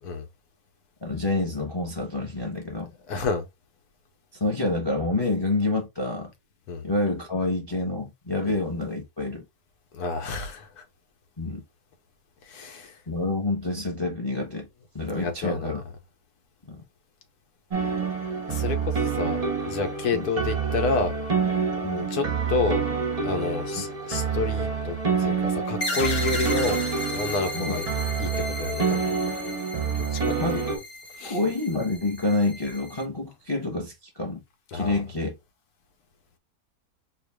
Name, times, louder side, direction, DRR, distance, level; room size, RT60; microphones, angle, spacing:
voice 1, 1.0-2.9 4.3-6.3 6.8-9.4 11.4-11.6 13.1-14.7 14.9-15.8 16.7-16.8 20.1-20.3 21.8-22.1 23.8-23.9 27.5-27.8 30.3-30.6 31.2-34.4 34.7-35.3, left 2 dB, 20° left, 0.7 m, -28 dB
voice 2, 3.1-3.5 6.7-6.8 8.5-8.6 9.9-10.8 12.4-12.9 15.1-15.7 18.5-19.4 19.7-21.1 22.1-22.8 23.2-26.8 27.1-27.9 28.2-28.3 28.6-29.1 30.1-30.2 30.5-30.6 31.2-31.4 34.7-35.0, left 4 dB, 80° left, 1.4 m, -29 dB
sound 1, 17.7-30.8, right 5 dB, 35° right, 0.6 m, -27 dB
sound 2, 25.8-33.0, left 1 dB, 65° left, 2.5 m, -35 dB
4.5 x 2.4 x 3.3 m
omnidirectional pair, 1.6 m